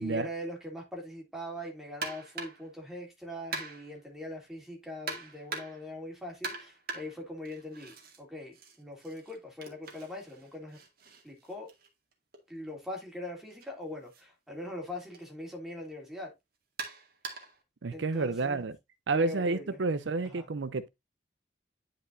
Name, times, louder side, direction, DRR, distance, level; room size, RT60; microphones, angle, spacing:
voice 1, 0.0-10.8 11.2-11.7 12.5-16.3 17.9-18.6 19.1-19.8 20.2-20.5, left 1 dB, ahead, 2.9 m, -41 dB
sound 1, 2.0-2.7 3.5-4.0 5.1-5.9 6.4-8.2 8.5-12.4 13.5-13.7 14.1-14.2 15.1-15.3 16.8-17.6, right 3 dB, 55° right, 2.1 m, -42 dB
voice 2, 17.8-18.7 19.1-20.9, right 3 dB, 75° right, 0.6 m, -30 dB
10.0 x 5.1 x 2.6 m
head